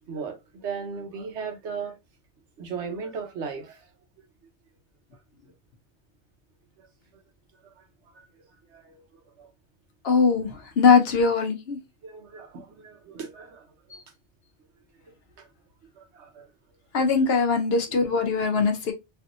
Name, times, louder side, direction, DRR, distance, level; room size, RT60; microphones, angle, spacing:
voice 1, 0.1-1.9 2.6-3.9 6.8-6.9 7.6-7.8 8.7-9.0 9.4-9.5 12.0-13.7 15.4-15.5 16.0-16.5, right 5 dB, 70° right, 1.1 m, -37 dB
voice 2, 10.0-10.5 10.8-11.8 16.9-18.9, left 5 dB, 60° left, 0.9 m, -21 dB
3.4 x 2.6 x 2.4 m
omnidirectional pair, 1.2 m